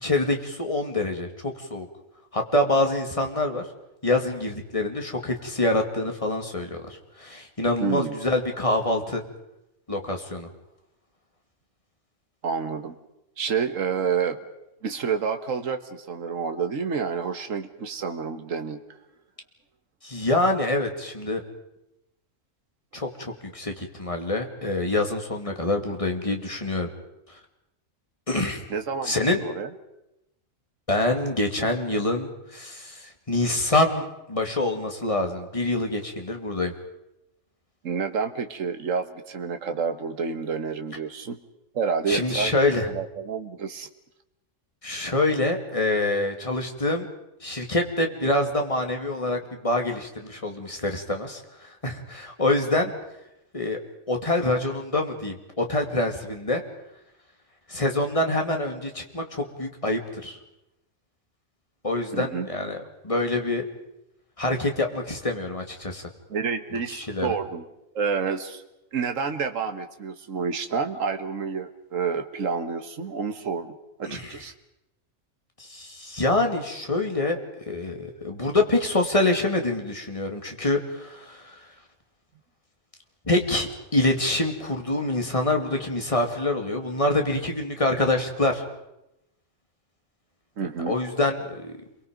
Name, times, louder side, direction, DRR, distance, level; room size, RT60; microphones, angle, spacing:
voice 1, 0.0-1.9 2.3-3.7 4.0-9.2 9.9-10.5 20.0-21.4 22.9-26.9 27.3-27.4 28.3-28.7 29.0-29.4 30.9-36.7 42.1-42.9 44.8-47.1 47.4-52.9 53.5-53.8 54.1-56.6 57.7-60.4 61.8-63.7 64.4-66.1 66.7-67.3 74.1-74.4 75.6-77.4 77.7-81.6 83.2-88.6 90.6-91.8, left 2 dB, 25° left, 3 dB, 2.5 m, -26 dB
voice 2, 7.8-8.2 12.4-13.0 13.4-14.4 14.8-18.8 28.7-29.7 37.8-41.4 41.7-42.5 42.9-43.9 62.1-62.5 66.3-67.7 68.0-68.6 68.9-74.5 90.6-91.0, right 6 dB, 80° right, 7 dB, 1.7 m, -29 dB
30.0 x 23.0 x 5.2 m, 0.88 s
omnidirectional pair, 1.3 m